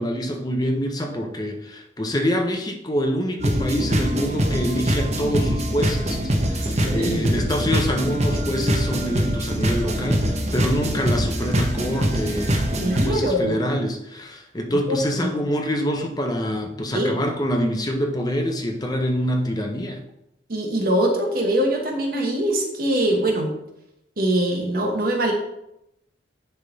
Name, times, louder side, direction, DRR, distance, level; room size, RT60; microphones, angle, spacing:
voice 1, 0.0-20.0, equal, 20° left, 3 dB, 0.7 m, -26 dB
sound 1, 3.4-13.1, equal, 40° right, 0.9 m, -23 dB
voice 2, 6.8-7.2 12.8-13.6 14.9-15.3 16.9-17.2 20.5-23.5 24.2-25.3, right 1 dB, 55° right, 1 dB, 1.4 m, -23 dB
10.0 x 3.5 x 4.0 m, 0.84 s
head